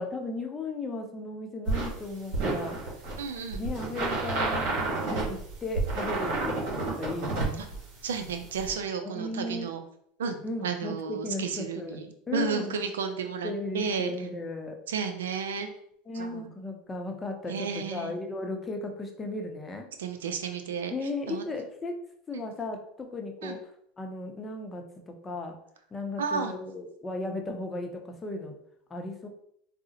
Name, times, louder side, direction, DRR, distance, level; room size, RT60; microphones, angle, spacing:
voice 1, 0.0-2.8 3.6-4.8 5.1-7.6 9.0-9.7 10.4-12.0 12.3-12.8 13.4-14.8 16.1-19.9 20.9-22.0 22.3-23.6 24.0-25.6 25.9-28.5 28.9-29.3, left 2 dB, 20° left, 3 dB, 0.6 m, -36 dB
sound 1, 1.7-8.7, right 3 dB, 65° right, 1.2 m, -31 dB
voice 2, 3.2-3.6 7.6-7.7 8.0-9.8 10.2-14.1 14.9-15.7 16.1-16.5 17.5-18.2 20.0-20.9 21.3-21.4 22.3-22.4 23.4-23.6 26.2-26.5, right 6 dB, 85° right, 7 dB, 0.4 m, -32 dB
3.6 x 2.0 x 2.8 m, 0.69 s
hypercardioid pair, 95°, 0 cm